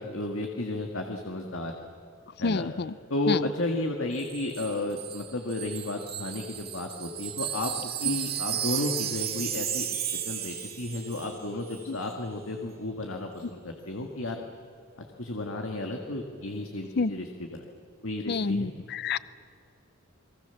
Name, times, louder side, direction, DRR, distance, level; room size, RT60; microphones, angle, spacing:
voice 1, 0.0-1.7 2.4-2.7 3.1-14.4 15.0-17.7 18.0-18.7, left 2 dB, 75° left, 3 dB, 2.0 m, -33 dB
Wind chime, 4.2-11.4 11.7-11.9, right 10 dB, 45° right, 2.3 m, -34 dB
voice 2, 18.3-19.2, left 4 dB, 50° left, 17 dB, 0.5 m, -27 dB
29.0 x 22.5 x 7.1 m, 2.5 s
head